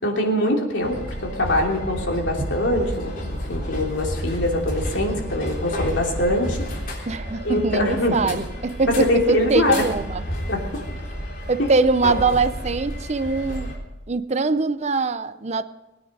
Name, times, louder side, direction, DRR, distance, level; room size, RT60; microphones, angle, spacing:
voice 1, 0.0-6.7 7.4-8.3 8.8-9.8 10.5-10.8 11.6-11.7 12.0-12.1, left 1 dB, 80° left, 0 dB, 3.0 m, -23 dB
sound 1, 0.8-13.8, equal, 50° left, 3.7 m, -31 dB
voice 2, 7.1-10.2 11.5-13.7 14.1-15.6, right 3 dB, 35° right, 13 dB, 0.6 m, -22 dB
21.0 x 9.5 x 5.5 m, 1.0 s
head